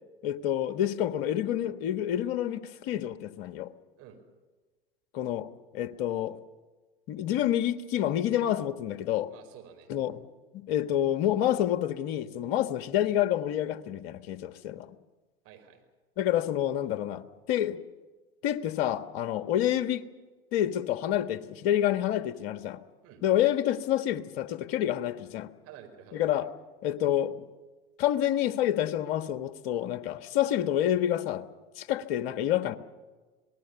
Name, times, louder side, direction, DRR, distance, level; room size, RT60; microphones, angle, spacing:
voice 1, 0.2-3.7 5.1-5.5 5.7-6.4 7.1-9.3 9.9-10.2 10.5-14.9 16.2-17.8 18.4-20.0 20.5-22.8 23.2-25.5 26.1-26.5 26.8-27.4 28.0-31.4 31.8-32.8, left 11 dB, 55° left, 1.5 m, -28 dB
voice 2, 9.3-9.9 15.4-15.8 23.0-23.2 25.6-26.5, right 9 dB, 50° right, 5.0 m, -50 dB
26.0 x 19.0 x 7.1 m
hypercardioid pair, 85°, 29 cm